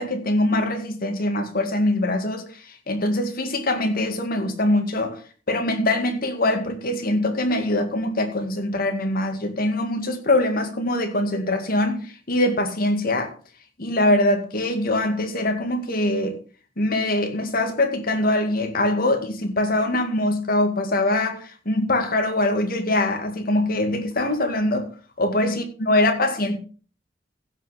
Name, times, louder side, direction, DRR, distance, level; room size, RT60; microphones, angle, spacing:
voice 1, 0.0-5.2 5.5-13.3 13.8-16.3 16.8-24.9 25.2-26.6, left 1 dB, 50° left, 2.2 m, -23 dB
15.5 x 6.0 x 5.0 m
head